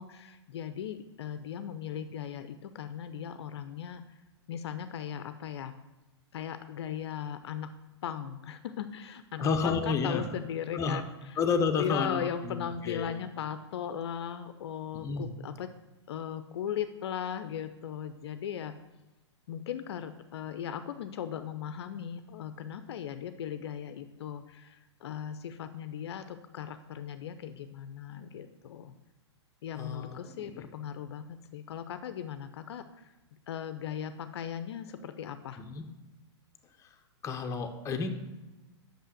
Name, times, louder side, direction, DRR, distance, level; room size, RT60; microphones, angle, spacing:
voice 1, 0.0-4.0 4.5-5.7 6.3-7.7 8.0-11.4 11.7-15.7 16.1-18.7 19.5-28.9 29.6-33.0 33.5-35.6, left 9 dB, 65° left, 10 dB, 0.5 m, -38 dB
voice 2, 9.4-10.3 10.7-11.0 11.4-13.2 14.9-15.3 29.8-30.7 35.6-35.8 36.8-36.9 37.2-38.1, left 5 dB, 20° left, 5 dB, 0.8 m, -31 dB
6.1 x 5.6 x 6.3 m, 1.1 s
hypercardioid pair, 115°, 15 cm